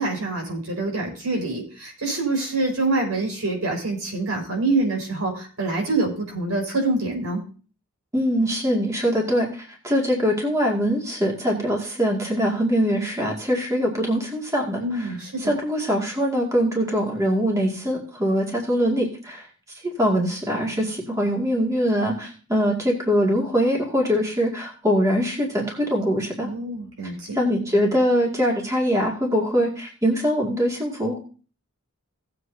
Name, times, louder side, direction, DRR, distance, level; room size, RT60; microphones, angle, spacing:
voice 1, 0.0-7.4 14.8-15.6 26.4-27.4, right 2 dB, 90° right, 2 dB, 4.8 m, -26 dB
voice 2, 8.1-15.1 15.4-19.5 19.8-26.5 27.3-31.2, equal, 15° right, -2 dB, 2.1 m, -23 dB
17.5 x 7.8 x 2.7 m, 0.38 s
head